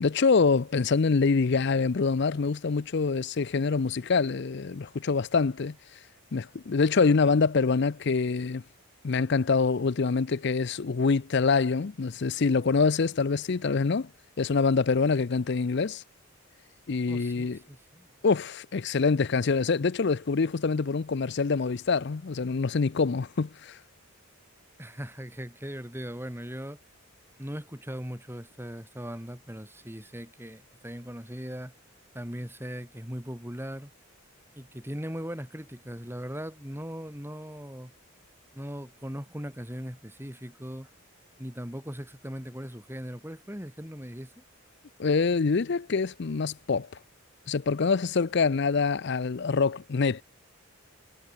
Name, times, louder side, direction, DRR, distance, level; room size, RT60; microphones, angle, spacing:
voice 1, 0.0-5.8 6.3-8.6 9.0-14.1 14.4-16.0 16.9-17.6 18.2-23.8 45.0-46.9 47.5-50.2, left 4 dB, 50° left, 0.5 m, -25 dB
voice 2, 17.1-18.1 24.8-26.8 27.4-31.7 32.1-33.9 34.5-37.9 38.5-40.9 41.4-44.4, equal, 10° right, 4.7 m, -39 dB
head